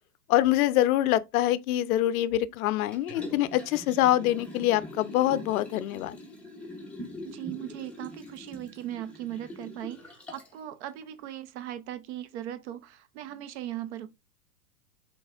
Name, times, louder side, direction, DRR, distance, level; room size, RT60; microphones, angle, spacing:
voice 1, 0.3-6.2, left 14 dB, 60° left, 0.5 m, -25 dB
Liquid, 2.9-10.6 11.0-11.1, left 1 dB, 5° left, 0.7 m, -43 dB
voice 2, 7.2-14.1, right 12 dB, 45° right, 0.5 m, -38 dB
4.0 x 3.3 x 2.4 m
hypercardioid pair, 120°, 48 cm